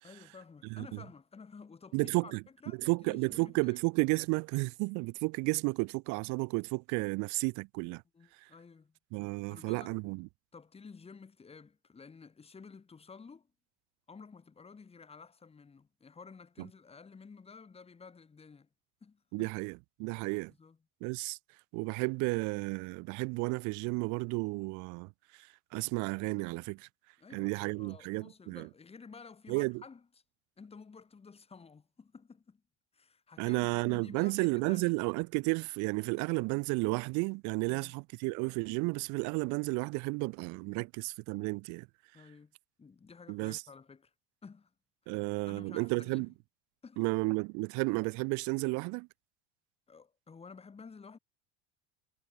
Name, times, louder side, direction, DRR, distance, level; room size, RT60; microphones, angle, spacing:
voice 1, 0.0-2.3 2.6-3.8 8.1-9.0 9.5-10.0 10.5-13.5 14.1-18.7 19.0-19.5 20.6-20.8 27.2-30.1 30.6-32.6 32.9-35.0 37.6-37.9 42.1-42.5 42.8-44.1 44.4-44.7 45.1-45.2 45.5-46.3 46.8-47.0 49.9-51.2, left 5 dB, 15° left, 1.2 m, -52 dB
voice 2, 1.9-2.4 2.8-8.0 9.1-10.3 16.6-16.7 19.3-19.7 20.0-20.5 21.0-21.4 21.7-25.1 25.4-25.5 25.7-26.9 27.3-28.7 29.5-29.8 33.4-41.9 43.3-43.6 45.1-46.3 47.0-49.1, right 29 dB, 55° right, 0.5 m, -32 dB
hypercardioid pair, 85°, 35 cm